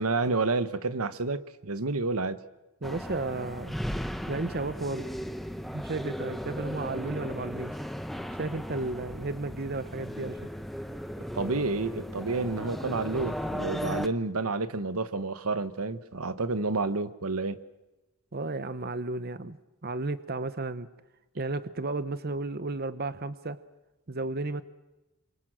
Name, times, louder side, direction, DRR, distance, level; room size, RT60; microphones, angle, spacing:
voice 1, 0.0-2.4 11.3-17.6, right 3 dB, 85° right, 13 dB, 1.3 m, -29 dB
sound 1, 2.8-14.1, equal, ahead, 1.1 m, -36 dB
voice 2, 2.8-3.8 4.3-5.0 5.7-7.8 8.4-10.5 18.3-19.6 19.8-20.9 21.4-23.6 24.1-24.6, right 2 dB, 45° right, 13 dB, 0.9 m, -33 dB
27.5 x 25.0 x 7.7 m, 1.0 s
head